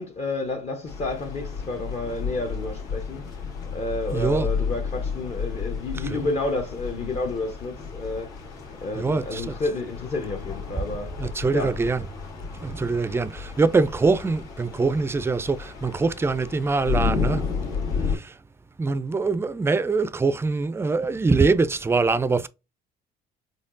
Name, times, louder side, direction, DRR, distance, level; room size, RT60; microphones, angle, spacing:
voice 1, 0.0-3.3 3.7-8.5 8.8-11.2 11.5-11.8, left 2 dB, 40° left, 0.9 m, -30 dB
sound 1, 0.9-18.2, left 5 dB, 85° left, 2.1 m, -32 dB
voice 2, 4.1-4.5 6.1-6.2 9.0-9.5 11.2-12.0 12.5-17.4 18.0-18.4 18.8-22.5, right 4 dB, 15° right, 0.4 m, -23 dB
4.3 x 3.2 x 2.5 m
cardioid pair, 110°, 17 cm